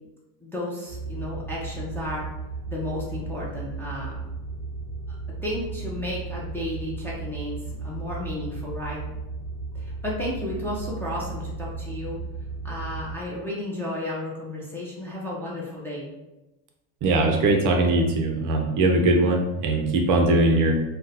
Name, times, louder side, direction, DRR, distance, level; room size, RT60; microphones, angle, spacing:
voice 1, 0.4-2.3 2.7-4.2 5.1-9.0 9.7-12.2 12.6-16.1, left 1 dB, 5° left, -6 dB, 0.5 m, -33 dB
sound 1, 0.9-13.1, right 3 dB, 35° left, 0.9 m, -35 dB
voice 2, 17.0-20.7, right 2 dB, 45° right, 2 dB, 0.6 m, -21 dB
2.6 x 2.2 x 4.0 m, 1.0 s
supercardioid pair, 130°, 43 cm